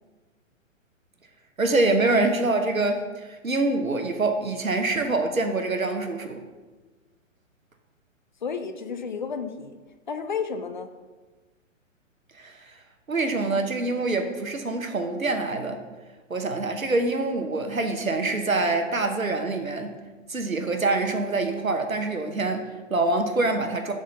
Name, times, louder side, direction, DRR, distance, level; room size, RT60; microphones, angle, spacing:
voice 1, 1.6-6.4 12.3-12.8 13.1-15.8 16.3-20.0 20.3-23.9, right 2 dB, 90° right, 5 dB, 1.0 m, -25 dB
voice 2, 8.4-9.8 10.1-10.9, left 6 dB, 40° left, 9 dB, 0.4 m, -31 dB
7.7 x 3.8 x 5.4 m, 1.3 s
figure-of-eight pair, 120°, 40 cm